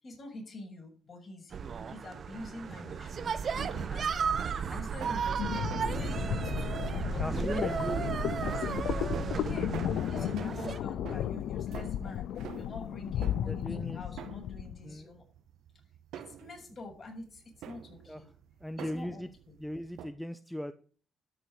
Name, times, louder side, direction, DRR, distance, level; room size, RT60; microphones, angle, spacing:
voice 1, 0.0-1.6 1.9-6.8 7.1-12.3 12.6-15.2 16.1-18.3 18.8-19.3, left 2 dB, 40° left, 0 dB, 7.3 m, -46 dB
sound 1, 1.5-10.8, right 6 dB, 50° right, 1.1 m, -34 dB
sound 2, 3.1-20.1, right 9 dB, 85° right, 1.6 m, -49 dB
sound 3, 5.4-14.8, left 11 dB, 80° left, 0.5 m, -34 dB
voice 2, 7.2-8.0 10.1-10.3 13.5-14.0 14.8-15.1 18.1-18.2 18.6-19.3 19.6-20.7, equal, 5° left, 10 dB, 0.8 m, -37 dB
13.0 x 6.6 x 8.1 m, 0.42 s
cardioid pair, 90°, 0 cm